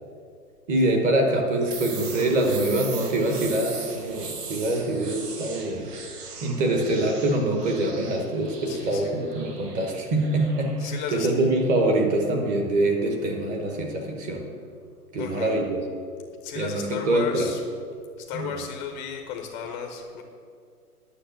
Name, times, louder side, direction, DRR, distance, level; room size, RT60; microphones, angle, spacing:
voice 1, 0.7-5.8 6.4-14.4 15.1-15.8 16.5-17.5 18.3-18.6, right 1 dB, 15° right, 3 dB, 1.1 m, -24 dB
sound 1, 1.7-13.3, right 5 dB, 80° right, 1.7 m, -40 dB
voice 2, 8.7-9.1 10.8-11.3 15.2-15.6 16.4-17.6 18.2-20.2, left 7 dB, 20° left, 4 dB, 0.8 m, -34 dB
9.9 x 6.6 x 7.7 m, 2.2 s
hypercardioid pair, 145°, 46 cm